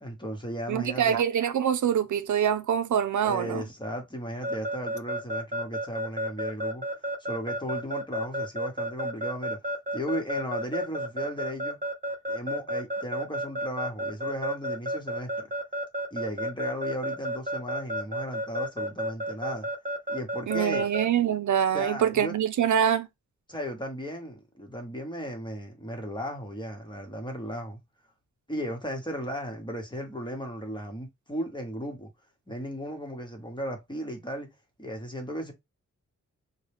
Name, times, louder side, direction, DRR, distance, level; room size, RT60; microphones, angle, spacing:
voice 1, 0.0-1.2 3.2-6.8 7.2-9.6 9.9-11.8 12.3-15.3 16.1-19.7 20.1-20.9 21.7-22.3 23.5-27.8 28.5-32.1 32.5-34.5 34.8-35.5, equal, 15° left, 1.1 m, -35 dB
voice 2, 0.7-3.6 20.5-23.1, right 9 dB, 75° right, 0.5 m, -25 dB
Keyboard (musical) / Alarm, 4.4-21.0, equal, 25° right, 0.9 m, -31 dB
3.8 x 2.2 x 3.4 m
wide cardioid pair, 125°, 30 cm